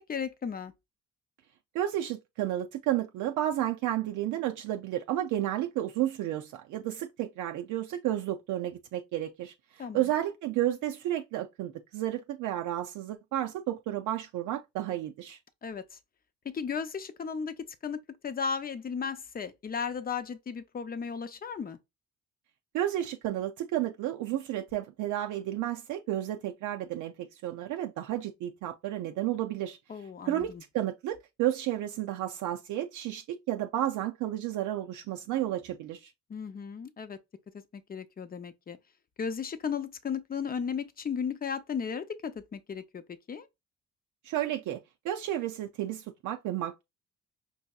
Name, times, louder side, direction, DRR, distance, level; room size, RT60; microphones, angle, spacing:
voice 1, 0.1-0.7 9.8-10.0 15.6-16.0 16.4-17.6 17.8-21.8 29.9-30.6 36.3-37.2 37.5-38.8 39.2-43.0 43.3-43.5, left 6 dB, 30° left, 0.6 m, -35 dB
voice 2, 1.7-15.4 22.7-29.8 30.3-36.1 44.2-46.8, right 13 dB, 80° right, 0.4 m, -32 dB
5.4 x 2.7 x 2.3 m
cardioid pair, 90°, 30 cm